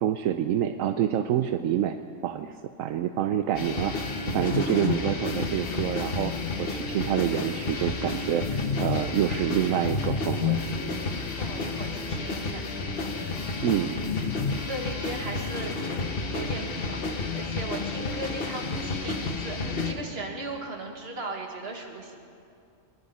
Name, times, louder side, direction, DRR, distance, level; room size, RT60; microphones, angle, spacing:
voice 1, 0.0-2.0 2.2-4.0 4.3-10.6 13.6-14.0, right 10 dB, 80° right, 8 dB, 1.0 m, -27 dB
sound 1, 3.5-19.9, left 4 dB, 50° left, 1.3 m, -30 dB
voice 2, 11.3-12.7 14.7-15.8 16.3-22.2, right 2 dB, 50° right, 2 dB, 1.9 m, -37 dB
23.0 x 11.0 x 5.4 m, 2.5 s
omnidirectional pair, 1.4 m